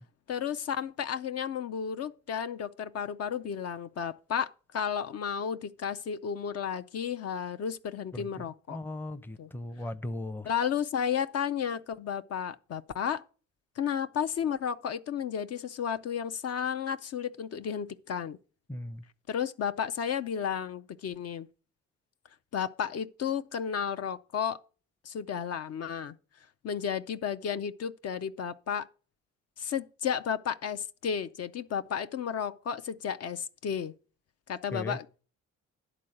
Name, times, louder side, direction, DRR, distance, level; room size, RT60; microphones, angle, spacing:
voice 1, 0.3-8.8 9.4-9.5 10.4-13.2 13.8-18.4 19.3-21.5 22.5-24.6 25.0-26.2 26.6-28.9 29.6-33.9 34.5-35.2, left 8 dB, 55° left, 0.5 m, -33 dB
voice 2, 8.7-10.5 18.7-19.0 34.7-35.0, left 1 dB, 5° left, 0.6 m, -37 dB
11.0 x 3.9 x 7.7 m
cardioid pair, 90°, 30 cm